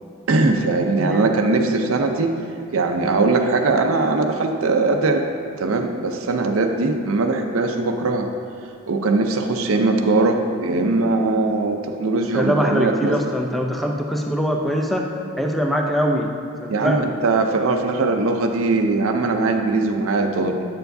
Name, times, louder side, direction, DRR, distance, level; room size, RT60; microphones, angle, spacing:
voice 1, 0.3-2.3 2.7-5.2 5.6-8.3 8.9-13.1 16.7-20.7, right 3 dB, 75° right, 4 dB, 0.5 m, -20 dB
voice 2, 1.0-1.3 12.3-16.3 16.6-17.1, equal, ahead, 1 dB, 0.4 m, -23 dB
9.0 x 6.9 x 2.6 m, 2.4 s
head